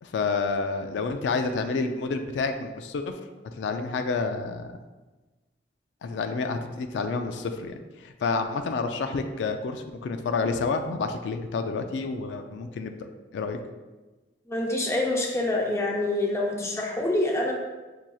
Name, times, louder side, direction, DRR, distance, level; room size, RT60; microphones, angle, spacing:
voice 1, 0.0-3.2 3.5-4.7 6.0-7.7 8.0-13.1 13.3-13.6, left 4 dB, 90° left, 7 dB, 0.3 m, -29 dB
voice 2, 14.5-17.5, left 1 dB, 15° left, -1 dB, 0.5 m, -26 dB
6.0 x 2.8 x 2.3 m, 1.2 s
head